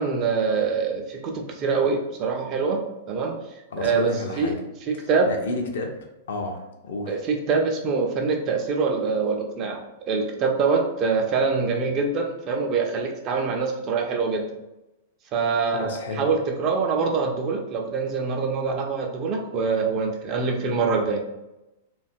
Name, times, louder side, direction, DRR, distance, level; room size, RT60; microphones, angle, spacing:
voice 1, 0.0-3.4 3.8-4.1 4.4-4.6 4.9-5.3 7.1-9.8 10.1-14.5 15.3-21.2, right 4 dB, 35° right, 2 dB, 0.4 m, -24 dB
voice 2, 3.7-4.6 4.9-6.0 6.3-7.2 15.6-16.3, left 2 dB, 65° left, 2 dB, 0.4 m, -31 dB
2.6 x 2.2 x 2.5 m, 0.95 s
figure-of-eight pair, 100°, 0 cm